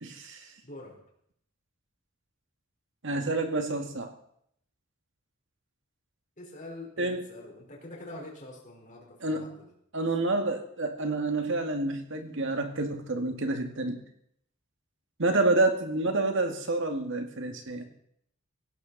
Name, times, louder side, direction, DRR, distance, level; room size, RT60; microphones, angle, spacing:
voice 1, 0.0-0.5 3.0-4.1 7.0-7.2 9.2-9.5 9.9-14.0 15.2-17.9, right 2 dB, 60° right, 5 dB, 2.1 m, -28 dB
voice 2, 0.6-1.0 6.4-9.7, left 1 dB, 35° left, -1 dB, 4.6 m, -45 dB
17.0 x 17.0 x 4.2 m, 0.71 s
head